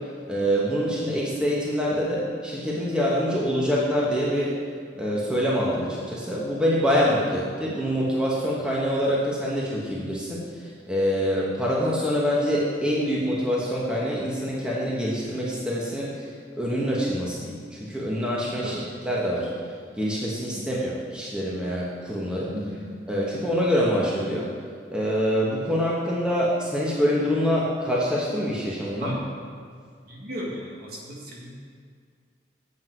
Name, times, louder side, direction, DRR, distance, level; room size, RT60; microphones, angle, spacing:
voice 1, 0.3-4.5 4.9-16.2 16.6-19.5 20.0-22.5 23.1-24.5 24.9-29.1, equal, 5° right, -5 dB, 1.2 m, -25 dB
voice 2, 22.5-22.8 28.9-29.2 30.1-31.5, equal, 50° right, -3 dB, 1.8 m, -34 dB
8.6 x 7.8 x 4.6 m, 2.1 s
head